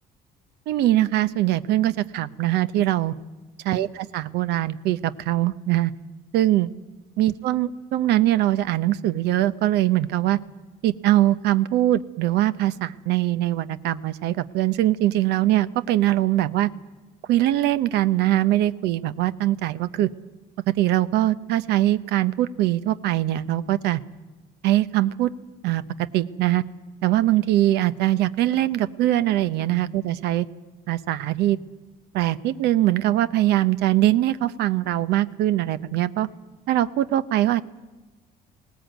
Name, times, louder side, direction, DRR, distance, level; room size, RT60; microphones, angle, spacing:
voice 1, 0.7-3.1 3.6-5.9 6.3-6.7 7.2-10.4 10.8-16.7 17.3-20.1 20.8-24.0 24.6-25.3 25.6-26.6 27.0-30.5 30.9-31.6 32.1-36.3 36.7-37.6, right 14 dB, 85° right, 14 dB, 0.8 m, -22 dB
19.5 x 18.0 x 9.1 m, 1.2 s
cardioid pair, 110°, 17 cm